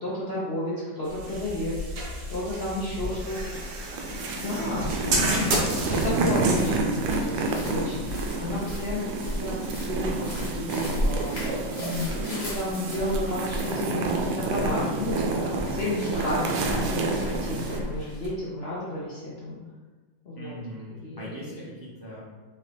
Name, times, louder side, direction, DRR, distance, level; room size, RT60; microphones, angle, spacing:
voice 1, 0.0-3.4 4.4-9.6 9.9-11.3 11.7-19.6 20.3-20.5 21.0-21.2, left 1 dB, 60° left, -8 dB, 0.6 m, -32 dB
sound 1, 1.0-8.9, right 1 dB, 65° right, 1.3 m, -31 dB
voice 2, 2.8-3.6 5.0-5.6 20.3-22.2, equal, 40° right, -8 dB, 0.3 m, -42 dB
sound 2, 3.5-17.8, right 3 dB, 90° right, 1.3 m, -30 dB
sound 3, 5.0-18.3, equal, 20° left, 0.9 m, -35 dB
4.2 x 2.9 x 3.4 m, 1.3 s
omnidirectional pair, 2.0 m